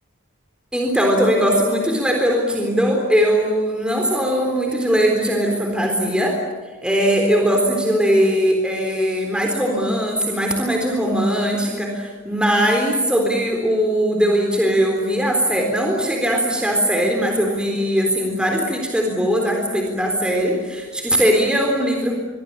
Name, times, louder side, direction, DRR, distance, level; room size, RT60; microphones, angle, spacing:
voice 1, 0.7-6.4 6.8-22.2, equal, 5° right, 1 dB, 3.8 m, -20 dB
26.0 x 23.0 x 8.6 m, 1.4 s
head